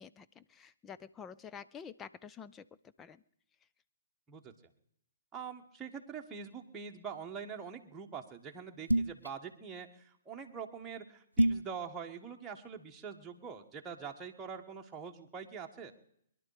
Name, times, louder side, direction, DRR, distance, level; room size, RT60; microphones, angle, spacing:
voice 1, 0.0-2.7 3.0-3.2, left 7 dB, 15° left, 12 dB, 0.6 m, -49 dB
voice 2, 5.3-15.9, right 6 dB, 15° right, 1 dB, 1.6 m, -44 dB
sound 1, 8.9-9.3 11.4-11.7, right 1 dB, 90° right, 0.5 m, -27 dB
22.5 x 11.5 x 5.0 m, 0.73 s
figure-of-eight pair, 125°, 0 cm